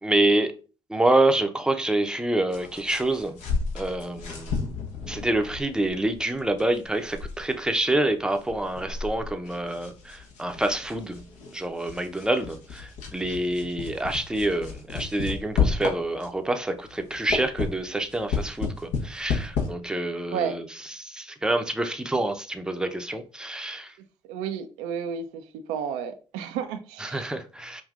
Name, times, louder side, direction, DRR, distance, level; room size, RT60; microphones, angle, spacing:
voice 1, 0.0-0.5 0.9-3.4 3.7-4.5 5.1-11.2 11.5-23.9 27.0-27.8, right 1 dB, 5° right, 0.7 m, -27 dB
sound 1, 2.5-16.5 16.9-19.7, left 5 dB, 70° left, 1.0 m, -32 dB
voice 2, 24.2-25.4 25.7-27.3, right 8 dB, 75° right, 0.4 m, -31 dB
5.1 x 2.6 x 2.4 m
hypercardioid pair, 50°, 13 cm